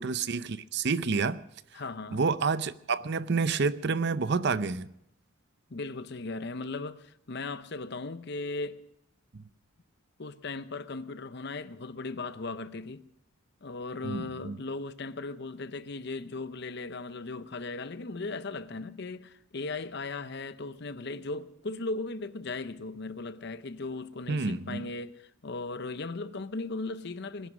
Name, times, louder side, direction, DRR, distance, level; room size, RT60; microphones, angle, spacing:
voice 1, 0.0-1.4 2.1-4.9 9.3-9.4 14.0-14.6 24.3-24.9, right 4 dB, 50° right, 0.6 m, -29 dB
voice 2, 1.7-2.2 5.7-8.8 10.2-13.0 13.6-27.5, left 3 dB, 50° left, 0.7 m, -37 dB
21.0 x 11.0 x 6.2 m
head